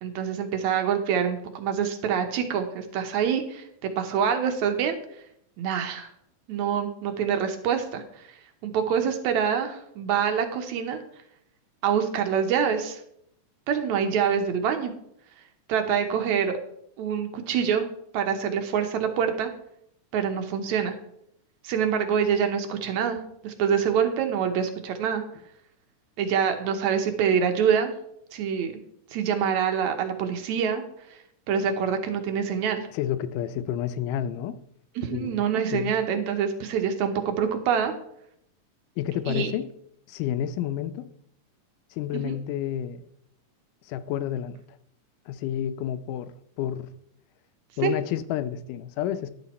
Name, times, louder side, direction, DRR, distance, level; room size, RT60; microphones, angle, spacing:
voice 1, 0.0-3.6 4.0-5.0 5.6-6.1 6.5-11.0 11.8-13.0 13.7-14.9 15.7-16.6 17.0-17.9 18.1-19.5 20.1-21.0 21.6-25.2 26.2-27.9 28.3-28.7 29.1-30.8 31.5-32.9 35.0-37.9 39.3-39.5 42.1-42.4 47.8-47.9, right 7 dB, 70° right, 6 dB, 2.0 m, -26 dB
voice 2, 32.9-34.6 35.1-35.4 35.7-35.9 39.0-39.7 40.1-41.1 41.9-43.0 43.9-44.6 45.3-46.9 47.8-49.3, left 10 dB, 85° left, 12 dB, 2.2 m, -30 dB
11.0 x 7.2 x 4.2 m, 0.73 s
omnidirectional pair, 3.7 m